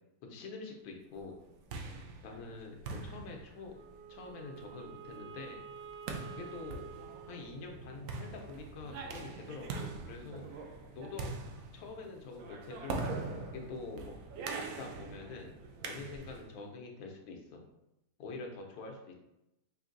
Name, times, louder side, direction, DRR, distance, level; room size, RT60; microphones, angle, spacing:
voice 1, 0.2-1.4 1.9-3.8 4.1-5.6 6.3-6.9 7.3-10.5 10.9-11.4 11.7-13.1 13.5-14.1 14.6-15.5 15.8-17.7 18.2-19.1, left 3 dB, 90° left, 2 dB, 1.5 m, -45 dB
sound 1, 1.3-16.5, right 3 dB, 75° right, 0.8 m, -43 dB
Wind instrument woodwind instrument, 3.7-8.1, right 6 dB, 60° left, 0.7 m, -50 dB
5.7 x 2.6 x 2.5 m, 0.89 s
omnidirectional pair, 2.1 m